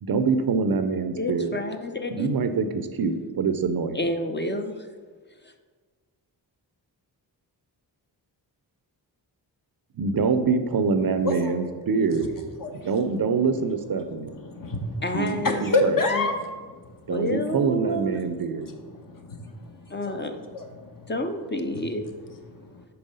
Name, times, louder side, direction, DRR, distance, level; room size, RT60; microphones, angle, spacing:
voice 1, 0.0-1.6 2.1-4.0 10.0-12.3 12.8-14.4 15.1-15.7 17.1-18.7, right 5 dB, 55° right, 9 dB, 0.6 m, -25 dB
voice 2, 1.2-2.3 3.9-4.7 5.4-5.5 15.0-15.7 16.1-16.2 17.1-18.2 19.9-20.4 21.1-22.1, left 1 dB, 25° left, 5 dB, 0.6 m, -29 dB
voice 3, 11.2-11.5 12.1-13.6 13.9-17.2 18.5-21.1 21.6-22.8, left 2 dB, 45° left, 3 dB, 1.1 m, -31 dB
5.5 x 4.4 x 5.4 m, 1.5 s
cardioid pair, 50°, 44 cm